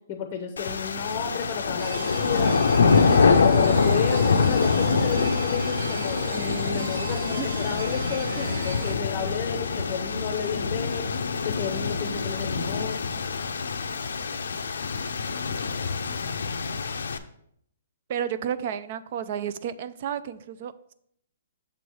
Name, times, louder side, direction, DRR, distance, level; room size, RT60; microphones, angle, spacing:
voice 1, 0.1-2.6 2.9-11.1 11.4-13.0, left 6 dB, 25° left, 5 dB, 0.6 m, -32 dB
sound 1, 0.6-17.2, left 5 dB, 90° left, 0.5 m, -25 dB
sound 2, 1.8-8.9, right 3 dB, 65° right, 0.9 m, -37 dB
voice 2, 18.1-20.9, right 9 dB, 40° right, 14 dB, 0.3 m, -31 dB
6.9 x 3.2 x 5.3 m, 0.69 s
hypercardioid pair, 165°, 0 cm